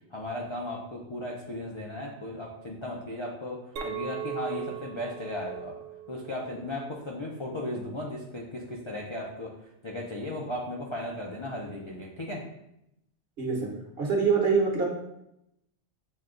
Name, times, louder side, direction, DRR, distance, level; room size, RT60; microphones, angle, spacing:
voice 1, 0.1-5.8 6.1-9.5 9.8-12.4, left 1 dB, 40° left, -2 dB, 0.4 m, -36 dB
Chink clink, 3.8-8.2, right 10 dB, 85° right, 0.9 m, -40 dB
voice 2, 14.0-14.9, right 5 dB, 55° right, -1 dB, 1.2 m, -24 dB
6.3 x 2.3 x 3.7 m, 0.82 s
omnidirectional pair, 1.2 m